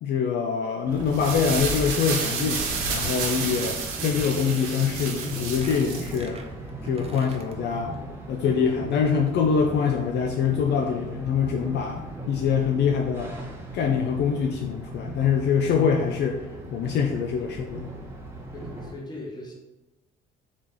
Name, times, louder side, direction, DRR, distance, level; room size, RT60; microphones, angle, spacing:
voice 1, 0.0-2.6 2.9-6.4 6.8-7.9 8.3-13.3 13.7-16.4 16.7-17.9, left 6 dB, 60° left, 3 dB, 0.5 m, -24 dB
sound 1, 0.8-18.9, right 1 dB, 10° right, 1.0 m, -38 dB
sound 2, 1.0-6.2, right 4 dB, 80° right, 1.0 m, -30 dB
Squeak, 1.5-1.7 2.0-3.6 3.9-4.0 4.8-4.9 5.2-7.5 7.9-8.0 8.2-8.3, right 4 dB, 30° right, 0.6 m, -46 dB
voice 2, 18.5-19.5, left 1 dB, 20° left, -2 dB, 1.3 m, -39 dB
4.1 x 3.1 x 3.7 m, 1.1 s
supercardioid pair, 85°, 20 cm